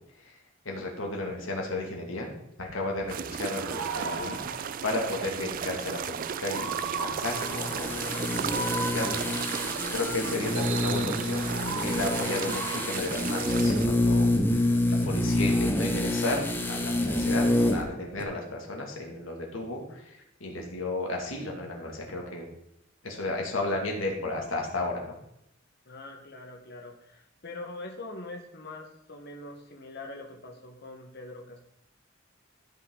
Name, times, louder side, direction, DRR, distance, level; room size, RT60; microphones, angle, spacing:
voice 1, 0.7-2.3 2.6-11.5 11.8-22.4 23.0-25.2, left 2 dB, 85° left, 0 dB, 2.3 m, -34 dB
voice 2, 1.2-1.5 14.6-14.9 25.8-31.6, left 2 dB, 55° left, 1 dB, 1.4 m, -43 dB
sound 1, 3.1-13.9, right 8 dB, 45° right, 0.3 m, -35 dB
sound 2, 3.6-12.9, right 4 dB, 85° right, 1.0 m, -37 dB
sound 3, 7.2-17.9 18.2-18.3, left 1 dB, 10° left, 0.9 m, -27 dB
14.0 x 5.7 x 3.9 m, 0.79 s
head